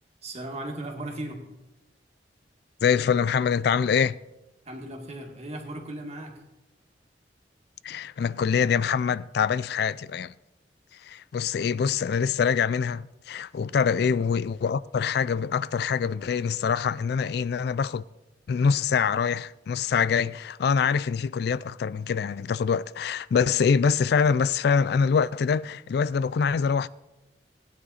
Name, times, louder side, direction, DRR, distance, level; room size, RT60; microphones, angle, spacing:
voice 1, 0.2-1.4 4.7-6.3 13.7-14.0, right 1 dB, 35° right, 2.1 m, -37 dB
voice 2, 2.8-4.2 7.8-10.3 11.0-18.0 18.5-26.9, left 6 dB, 60° left, 0.3 m, -24 dB
17.5 x 9.7 x 4.2 m
head